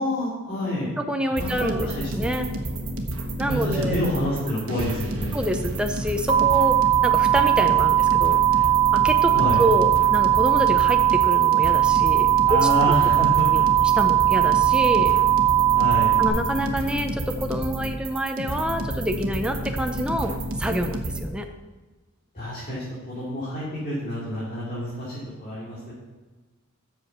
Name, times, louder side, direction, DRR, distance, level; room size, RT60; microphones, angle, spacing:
voice 1, 0.0-0.9 1.4-2.3 3.4-5.4 9.3-9.6 12.4-13.7 15.7-16.2 22.3-25.9, equal, 40° left, -9 dB, 2.8 m, -28 dB
voice 2, 1.0-1.9 2.1-2.5 3.4-4.0 5.3-6.8 7.0-8.7 8.9-12.6 13.2-13.3 13.5-15.2 16.2-21.5, equal, 5° right, 4 dB, 0.6 m, -27 dB
sound 1, 1.3-21.2, right 1 dB, 80° right, 1.1 m, -31 dB
sound 2, 6.3-16.3, right 13 dB, 35° right, 1.2 m, -19 dB
8.1 x 6.7 x 5.9 m, 1.3 s
head